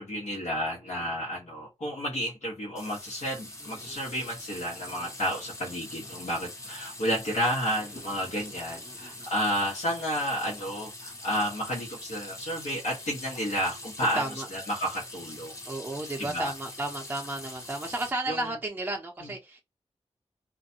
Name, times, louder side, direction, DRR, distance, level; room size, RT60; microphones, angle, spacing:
voice 1, 0.0-14.2 14.5-15.5 16.2-16.5 18.3-18.4, equal, 70° left, 1.2 m, -31 dB
sound 1, 2.7-18.1, left 1 dB, 25° left, 1.0 m, -43 dB
voice 2, 8.8-9.3 14.0-14.5 15.7-19.6, right 2 dB, 15° right, 0.6 m, -34 dB
2.5 x 2.2 x 2.7 m
cardioid pair, 65°, 12 cm